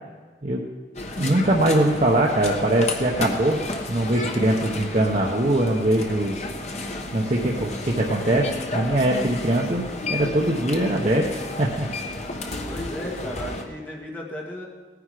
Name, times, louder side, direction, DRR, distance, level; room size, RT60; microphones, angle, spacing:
sound 1, 0.9-13.6, left 2 dB, 40° left, 1.1 m, -32 dB
voice 1, 1.2-3.6 3.9-6.4 7.1-11.3 11.6-11.9, right 1 dB, 40° right, -1 dB, 1.0 m, -22 dB
voice 2, 12.6-14.6, equal, 10° left, -3 dB, 2.0 m, -35 dB
17.5 x 9.8 x 4.9 m, 1.5 s
head